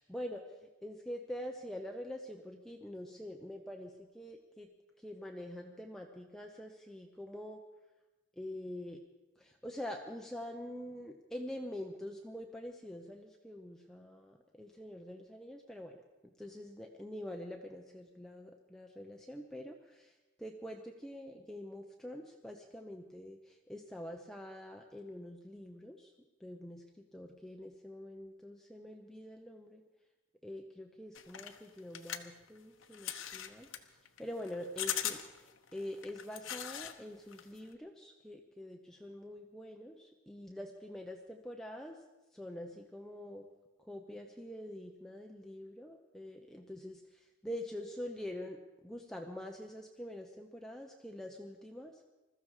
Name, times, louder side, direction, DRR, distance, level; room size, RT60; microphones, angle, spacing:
voice 1, 0.0-4.7 5.0-7.6 8.4-9.0 9.4-16.0 16.2-26.1 26.4-29.8 30.4-42.0 42.3-43.5 43.8-52.0, left 1 dB, ahead, 2 dB, 0.7 m, -45 dB
sound 1, 31.1-37.0 37.3-37.7, left 10 dB, 80° left, 1.1 m, -41 dB
21.0 x 14.0 x 4.9 m, 1.1 s
head